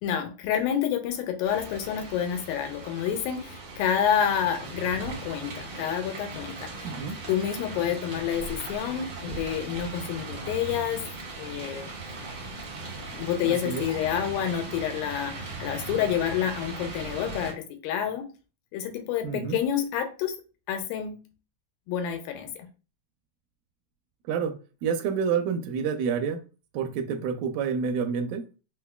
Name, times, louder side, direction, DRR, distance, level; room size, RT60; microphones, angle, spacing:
voice 1, 0.0-6.7 7.3-11.1 11.4-11.9 13.1-18.3 18.7-20.3 20.7-21.2 21.9-22.7, left 9 dB, 90° left, 2.4 m, -28 dB
sound 1, 1.4-17.5, right 3 dB, 65° right, 1.3 m, -39 dB
voice 2, 6.8-7.2 13.4-13.8 19.2-19.6 24.3-26.4 26.7-28.4, right 6 dB, 80° right, 2.2 m, -28 dB
5.5 x 2.1 x 2.2 m
omnidirectional pair, 4.1 m